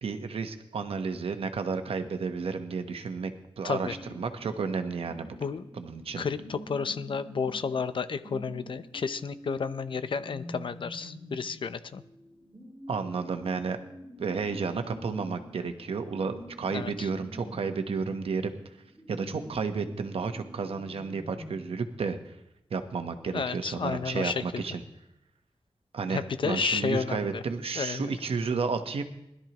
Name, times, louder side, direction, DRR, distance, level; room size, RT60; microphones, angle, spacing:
voice 1, 0.0-3.3 3.6-5.4 5.8-6.3 12.9-13.8 14.2-18.5 19.1-22.4 22.7-24.8 25.9-29.0, right 5 dB, 85° right, 7 dB, 1.0 m, -32 dB
voice 2, 3.6-3.9 5.4-5.7 6.2-12.0 16.7-17.1 23.3-24.6 26.1-27.4 27.7-28.2, left 5 dB, 60° left, 12 dB, 0.6 m, -32 dB
sound 1, 3.7-21.5, equal, 5° right, 5.4 m, -47 dB
20.5 x 12.5 x 3.0 m, 0.86 s
wide cardioid pair, 125°, 10 cm